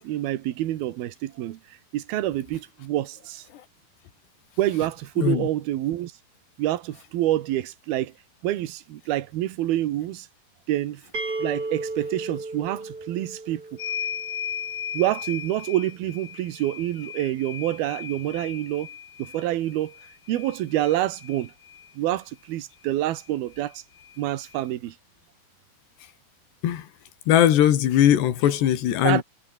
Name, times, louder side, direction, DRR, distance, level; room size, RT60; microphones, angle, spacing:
voice 1, 0.0-1.6 1.9-3.4 4.6-6.1 6.6-8.1 8.4-10.3 10.7-11.0 11.4-13.6 14.9-18.9 19.2-19.9 20.3-21.5 22.0-23.8 24.2-24.9 29.0-29.2, right 14 dB, 70° right, 3.1 m, -27 dB
voice 2, 5.2-5.5 26.6-26.9 27.3-29.2, left 11 dB, 75° left, 4.4 m, -20 dB
sound 1, 11.1-14.9, right 3 dB, 20° right, 5.2 m, -34 dB
sound 2, 13.8-21.9 23.2-23.3 23.6-24.6, left 8 dB, 55° left, 4.3 m, -37 dB
omnidirectional pair, 4.9 m